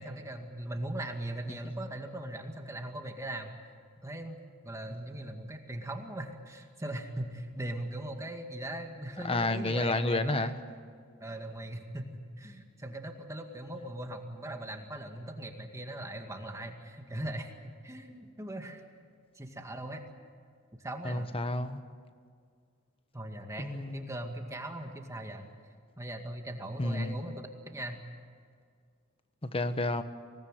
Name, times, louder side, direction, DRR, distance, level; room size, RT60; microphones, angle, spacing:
voice 1, 0.0-3.5 4.0-10.6 11.2-18.8 19.3-20.0 20.8-21.3 23.1-25.5 26.0-28.0, right 1 dB, 15° right, 4 dB, 2.0 m, -40 dB
voice 2, 9.2-10.6 21.0-21.8 23.6-24.1 26.8-27.2 29.4-30.0, left 2 dB, 25° left, 10 dB, 1.2 m, -30 dB
26.5 x 19.0 x 9.2 m, 2.1 s
head